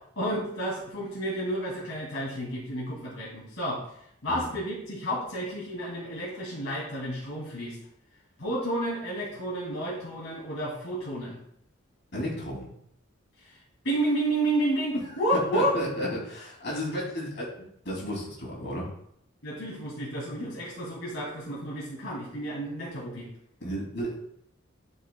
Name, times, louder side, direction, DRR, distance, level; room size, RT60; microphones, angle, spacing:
voice 1, 0.2-3.8 4.2-7.8 8.4-11.4 13.4-13.6 13.8-15.7 19.4-23.3, right 1 dB, 70° left, -6 dB, 2.3 m, -31 dB
voice 2, 12.1-12.7 15.0-15.1 15.5-18.9 23.6-24.2, equal, 55° left, -3 dB, 2.8 m, -33 dB
11.5 x 5.5 x 2.3 m, 0.72 s
head